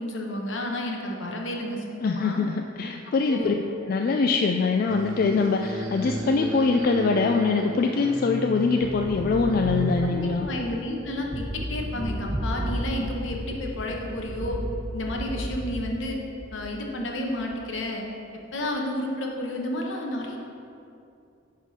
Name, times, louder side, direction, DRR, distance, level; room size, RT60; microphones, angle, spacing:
voice 1, 0.0-2.4 3.3-3.6 10.1-14.6 14.9-16.2 16.5-18.0 18.5-20.4, left 1 dB, 75° left, 0 dB, 1.1 m, -31 dB
voice 2, 2.0-3.5 3.8-10.5, left 4 dB, 45° left, 3 dB, 0.3 m, -23 dB
sound 1, 4.9-10.4, right 1 dB, 85° right, 0.8 m, -33 dB
sound 2, 8.8-16.8 17.4-17.8, right 1 dB, 20° right, 0.6 m, -34 dB
9.6 x 3.8 x 5.5 m, 2.6 s
head